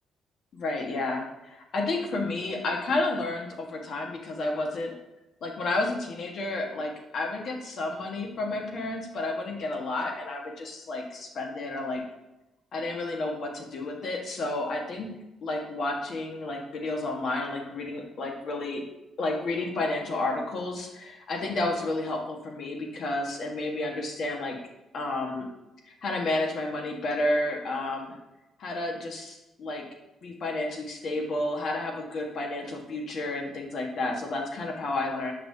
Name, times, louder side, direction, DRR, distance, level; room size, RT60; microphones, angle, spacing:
voice 1, 0.5-4.9 5.4-12.0 12.7-15.1 15.4-18.8 19.2-24.6 24.9-25.5 25.8-28.1 28.6-29.8 30.2-35.3, left 2 dB, 60° left, 1 dB, 1.4 m, -31 dB
6.4 x 5.8 x 2.8 m, 0.96 s
cardioid pair, 90°, 0 cm